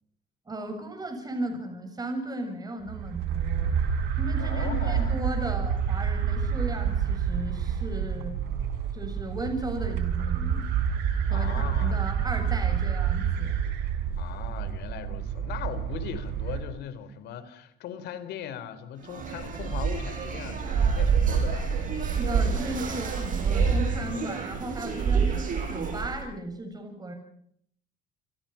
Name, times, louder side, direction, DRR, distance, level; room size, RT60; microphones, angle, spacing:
voice 1, 0.5-3.7 4.2-8.4 8.9-10.7 11.3-13.6 22.0-27.1, right 1 dB, 25° right, 5 dB, 7.3 m, -35 dB
sound 1, 2.9-16.6, right 8 dB, 85° right, 5.6 m, -28 dB
voice 2, 4.4-5.2 11.3-12.1 14.2-21.7, left 9 dB, 80° left, 12 dB, 4.0 m, -39 dB
sound 2, 19.0-26.2, right 6 dB, 50° right, 7.5 m, -27 dB
28.5 x 26.0 x 5.9 m, 0.68 s
cardioid pair, 110°, 17 cm